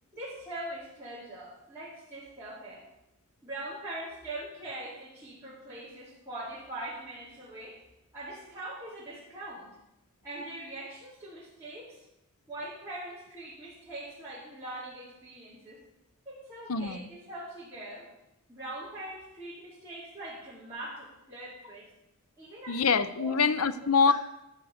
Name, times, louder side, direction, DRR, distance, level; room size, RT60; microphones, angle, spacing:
voice 1, 0.1-2.8 3.4-7.8 8.1-9.7 10.2-12.0 12.5-15.8 16.2-18.1 18.5-21.8 22.4-22.8 23.2-23.4, right 1 dB, 10° right, -13 dB, 4.7 m, -42 dB
voice 2, 16.7-17.1 22.7-24.1, left 5 dB, 80° left, 13 dB, 0.7 m, -25 dB
13.0 x 6.4 x 7.3 m, 0.89 s
head